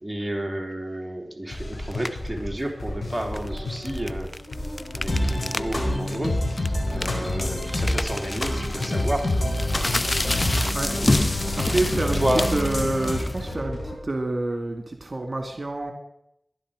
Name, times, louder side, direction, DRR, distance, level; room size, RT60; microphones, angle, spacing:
voice 1, 0.0-4.3 5.0-6.4 6.9-9.3 12.0-12.5, right 1 dB, 10° right, 1 dB, 3.3 m, -30 dB
sound 1, 1.5-13.9, left 1 dB, 90° left, 6.4 m, -34 dB
sound 2, 1.9-2.3 3.2-5.8 6.1-6.2 6.6-13.5, left 2 dB, 35° left, 0.5 m, -29 dB
sound 3, 5.1-13.2, left 1 dB, 55° left, 4.7 m, -27 dB
voice 2, 11.5-12.2 12.5-15.9, right 2 dB, 50° right, 4 dB, 2.2 m, -28 dB
18.0 x 11.5 x 5.1 m, 0.76 s
cardioid pair, 40°, 0 cm